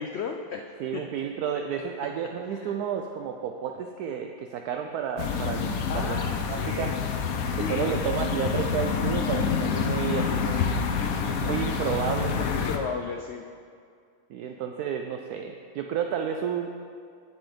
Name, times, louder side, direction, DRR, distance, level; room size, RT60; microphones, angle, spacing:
voice 1, 0.0-0.6 0.9-1.0 2.5-2.8 5.9-7.0 7.5-8.0 12.3-13.5, left 6 dB, 85° left, 4 dB, 0.5 m, -34 dB
voice 2, 0.8-6.2 6.5-6.9 7.6-10.7 11.4-12.4 14.3-16.7, right 8 dB, 75° right, 4 dB, 1.0 m, -31 dB
sound 1, 5.2-12.8, left 6 dB, 65° left, 1.1 m, -27 dB
8.3 x 8.2 x 5.1 m, 2.2 s
omnidirectional pair, 1.8 m